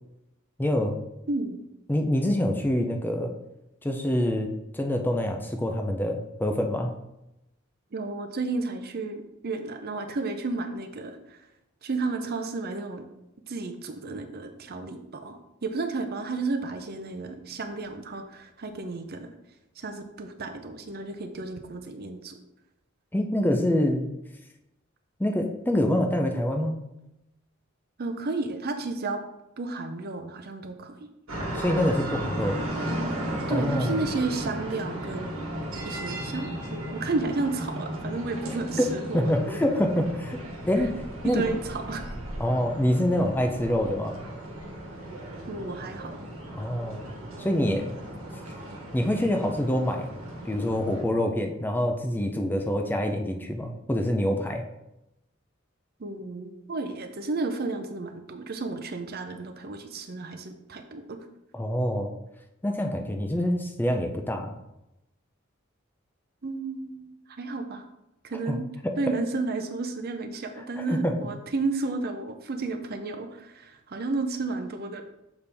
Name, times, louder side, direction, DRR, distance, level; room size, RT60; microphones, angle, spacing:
voice 1, 0.6-1.0 1.9-3.3 3.8-4.5 4.7-6.9 23.1-24.0 25.2-26.8 31.4-32.6 33.5-34.0 38.8-38.9 39.1-40.4 40.7-40.9 41.2-41.4 42.4-44.2 46.6-47.1 47.4-48.0 48.9-50.1 50.4-54.6 61.5-62.1 62.6-64.6 68.5-68.6 68.8-68.9 70.9-71.2, left 1 dB, 10° left, 3 dB, 0.5 m, -26 dB
voice 2, 1.3-1.6 7.9-11.4 11.8-13.0 13.5-19.3 19.8-22.4 28.0-29.2 29.6-31.0 33.5-35.4 35.8-39.6 41.2-42.0 45.5-46.2 56.0-61.2 66.4-67.9 68.2-68.6 69.0-75.0, right 3 dB, 50° right, 7 dB, 0.6 m, -32 dB
sound 1, 31.3-51.0, right 1 dB, 75° right, 1.4 m, -35 dB
6.8 x 4.2 x 3.4 m, 0.89 s
head